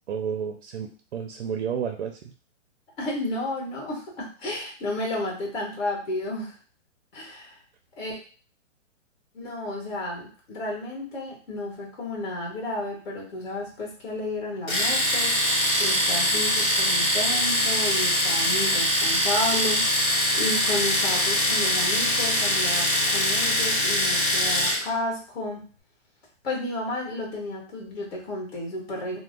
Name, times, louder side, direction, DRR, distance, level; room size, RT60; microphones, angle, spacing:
voice 1, 0.1-2.3, right 7 dB, 60° right, 5 dB, 0.5 m, -31 dB
voice 2, 3.0-6.5 7.1-7.6 8.0-8.2 9.3-15.3 15.8-25.6 26.4-29.2, left 1 dB, 55° left, -2 dB, 1.4 m, -32 dB
Domestic sounds home sounds, 14.7-24.9, left 1 dB, 15° left, 1.5 m, -23 dB
3.0 x 2.1 x 3.6 m, 0.40 s
hypercardioid pair, 165°, 37 cm